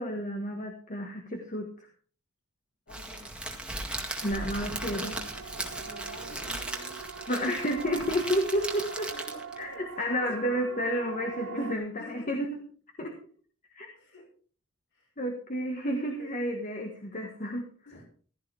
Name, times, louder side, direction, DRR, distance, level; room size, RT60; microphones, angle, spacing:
voice 1, 0.0-1.9 4.2-5.2 7.3-9.1 9.6-12.5 13.0-13.2 13.7-13.9 15.2-17.7, equal, 35° left, 2 dB, 1.6 m, -31 dB
voice 2, 2.9-3.3 5.7-7.0 7.4-8.5 9.1-10.1 10.5-10.7 11.4-11.7 12.0-12.3 14.0-14.3 14.9-15.1 16.2-16.5 17.8-18.0, left 1 dB, 55° left, 0 dB, 6.0 m, -50 dB
Crackle, 2.9-9.6, right 1 dB, 5° right, 1.9 m, -37 dB
Siren, 4.2-11.8, right 6 dB, 60° right, 0.7 m, -43 dB
15.5 x 13.0 x 3.5 m, 0.44 s
head